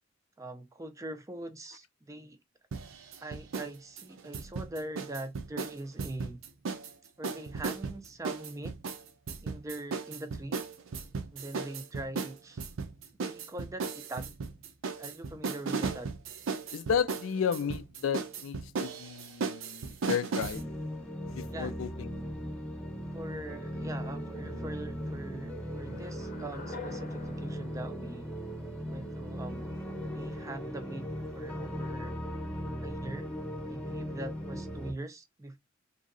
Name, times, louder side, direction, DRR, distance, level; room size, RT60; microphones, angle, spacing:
voice 1, 0.4-2.4 3.2-6.4 7.2-8.7 9.4-10.6 11.3-12.6 13.2-14.3 15.0-16.1 21.5-21.7 23.1-28.3 28.9-29.7 30.1-31.1 31.3-32.1 32.8-33.3 33.6-35.6, right 1 dB, 15° right, 0.4 m, -42 dB
sound 1, 2.7-3.7 4.0-6.9 7.2-20.6, right 4 dB, 80° right, 0.5 m, -36 dB
voice 2, 16.7-20.7 21.3-22.2, left 7 dB, 75° left, 0.3 m, -33 dB
sound 2, 20.5-34.9, equal, 5° left, 0.8 m, -38 dB
sound 3, 25.9-29.0, left 4 dB, 40° left, 0.7 m, -47 dB
3.0 x 2.7 x 2.5 m
head